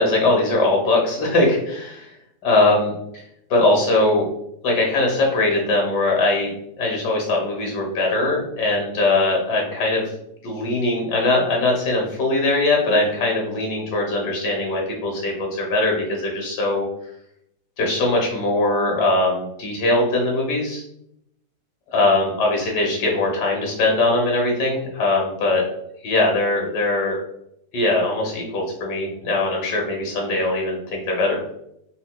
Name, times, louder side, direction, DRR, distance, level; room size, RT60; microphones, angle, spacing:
voice 1, 0.0-2.1 2.4-2.9 3.5-4.3 4.6-10.1 10.4-16.8 17.8-20.8 21.9-25.6 26.0-27.2 27.7-31.4, left 2 dB, 75° left, -1 dB, 1.6 m, -21 dB
4.9 x 2.4 x 2.2 m, 0.78 s
omnidirectional pair, 1.8 m